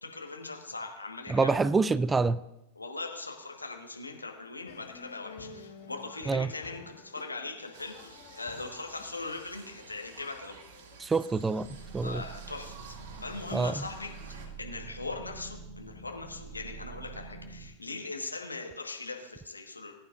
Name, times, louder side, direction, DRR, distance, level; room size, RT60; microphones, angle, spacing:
voice 1, 0.0-1.6 2.8-10.5 12.0-19.9, left 3 dB, 80° left, 2 dB, 1.5 m, -40 dB
voice 2, 1.3-2.4 6.3-6.5 11.0-11.7 11.9-12.2 13.5-13.8, right 4 dB, 15° right, 18 dB, 0.3 m, -26 dB
sound 1, 4.7-11.0, left 5 dB, 50° left, 1.6 m, -51 dB
sound 2, 7.7-14.5, right 5 dB, 50° right, 2.4 m, -51 dB
sound 3, 11.6-17.7, right 4 dB, 30° left, 3.2 m, -46 dB
19.0 x 9.0 x 2.6 m, 0.90 s
figure-of-eight pair, 90°, 0 cm